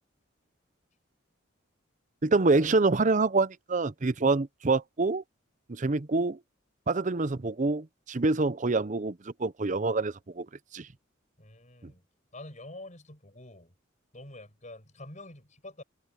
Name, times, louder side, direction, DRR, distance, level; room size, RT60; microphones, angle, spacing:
voice 1, 2.2-5.2 5.7-6.4 6.9-10.5 10.7-10.9, right 3 dB, 40° right, 0.6 m, -26 dB
voice 2, 11.4-12.0 12.3-13.7 14.1-15.8, left 2 dB, 40° left, 5.9 m, -46 dB
head